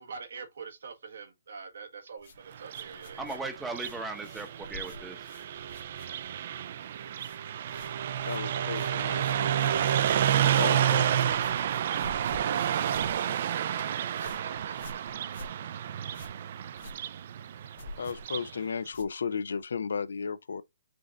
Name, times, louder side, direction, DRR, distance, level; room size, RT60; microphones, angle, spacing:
voice 1, 0.0-3.4 8.5-8.7 11.2-11.7 12.3-15.0, right 5 dB, 75° right, 1.3 m, -45 dB
sound 1, 2.2-6.5 6.8-7.4 7.7-19.6, left 2 dB, 55° left, 1.2 m, -49 dB
Car passing by, 2.6-18.5, right 10 dB, 45° right, 0.3 m, -30 dB
voice 2, 3.2-5.3, right 3 dB, 5° right, 0.7 m, -37 dB
voice 3, 8.2-9.6 10.6-11.1 18.0-20.6, left 5 dB, 85° left, 0.4 m, -34 dB
5.1 x 2.4 x 3.9 m
hypercardioid pair, 165°, 0 cm